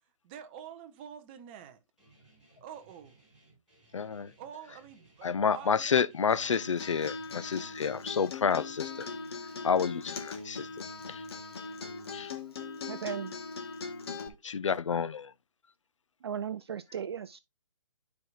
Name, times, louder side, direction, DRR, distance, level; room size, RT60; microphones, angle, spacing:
voice 1, 0.2-1.8 2.6-3.2 4.4-5.9, right 9 dB, 20° right, 0.7 m, -47 dB
Guitar, 2.0-11.8, right 2 dB, ahead, 5.4 m, -63 dB
voice 2, 3.9-4.3 5.2-9.1 9.6-10.7 11.1-11.2 12.1-12.3 14.4-15.3, left 6 dB, 65° left, 0.5 m, -29 dB
Acoustic guitar, 6.3-14.3, left 4 dB, 50° left, 1.4 m, -40 dB
voice 3, 12.9-13.3 16.2-17.4, right 8 dB, 50° right, 0.4 m, -36 dB
12.0 x 4.8 x 2.4 m
figure-of-eight pair, 140°, 17 cm